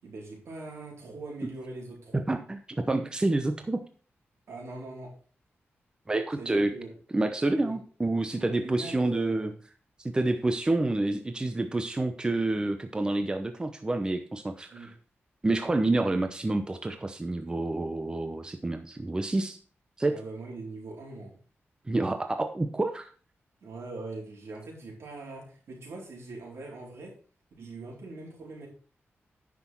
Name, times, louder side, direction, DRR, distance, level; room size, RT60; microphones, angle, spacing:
voice 1, 0.0-2.2 4.5-5.1 6.4-6.9 7.5-7.8 8.3-9.5 14.7-14.9 20.1-21.4 23.6-27.2 27.6-28.7, right 2 dB, 80° right, -2 dB, 4.3 m, -42 dB
voice 2, 2.1-3.8 6.1-6.7 7.1-9.5 10.0-14.9 15.4-19.6 20.0-20.1 21.9-23.1, right 2 dB, 20° right, 7 dB, 0.8 m, -28 dB
9.8 x 6.2 x 4.5 m, 0.39 s
wide cardioid pair, 130°, 4 cm